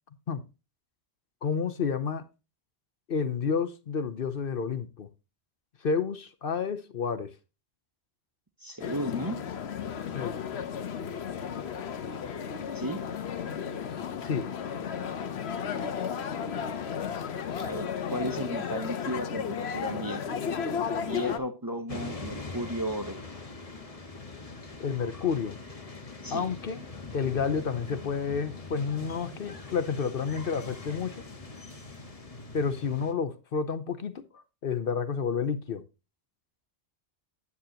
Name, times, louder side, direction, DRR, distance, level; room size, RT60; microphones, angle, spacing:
voice 1, 1.4-2.3 3.1-5.1 5.8-7.4 10.1-10.4 14.2-14.5 24.8-25.6 26.3-26.9 27.1-31.2 32.5-35.8, left 6 dB, 60° left, 1.0 m, -30 dB
voice 2, 8.6-9.4 12.7-13.0 17.6-20.2 21.0-23.2 26.2-26.5, equal, 20° right, 1.0 m, -34 dB
sound 1, 8.8-21.4, left 7 dB, 80° left, 1.1 m, -34 dB
sound 2, 21.9-33.1, left 3 dB, 35° left, 1.4 m, -42 dB
9.6 x 9.1 x 2.8 m
omnidirectional pair, 1.1 m